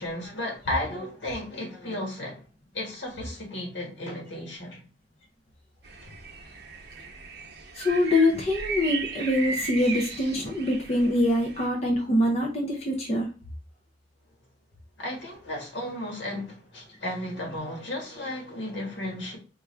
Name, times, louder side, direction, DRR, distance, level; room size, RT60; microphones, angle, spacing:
voice 1, 0.0-2.4 2.7-4.8 15.0-19.4, left 1 dB, 80° left, 1.4 m, -34 dB
sound 1, 5.8-11.7, right 4 dB, 60° right, 0.8 m, -37 dB
voice 2, 7.7-13.3, left 1 dB, 35° left, 0.6 m, -24 dB
4.5 x 2.5 x 3.2 m
head